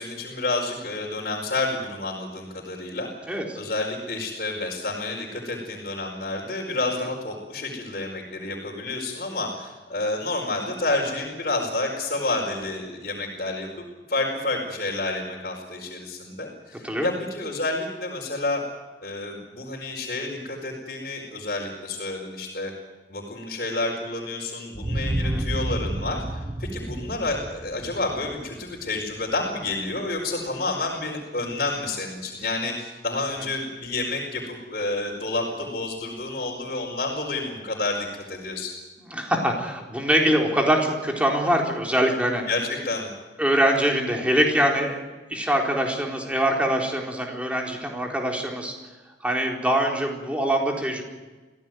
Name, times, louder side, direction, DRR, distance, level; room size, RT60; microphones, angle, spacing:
voice 1, 0.0-18.6 19.0-22.7 23.1-38.7 42.5-43.1, left 2 dB, 50° left, -4 dB, 5.0 m, -29 dB
voice 2, 3.3-3.6 16.8-17.1 25.1-25.4 39.1-42.4 43.4-45.0 45.3-48.7 49.2-51.0, right 1 dB, 5° right, 1 dB, 4.2 m, -23 dB
sound 1, 24.7-29.3, right 1 dB, 30° right, 0.9 m, -30 dB
25.5 x 16.5 x 9.4 m, 1.2 s
head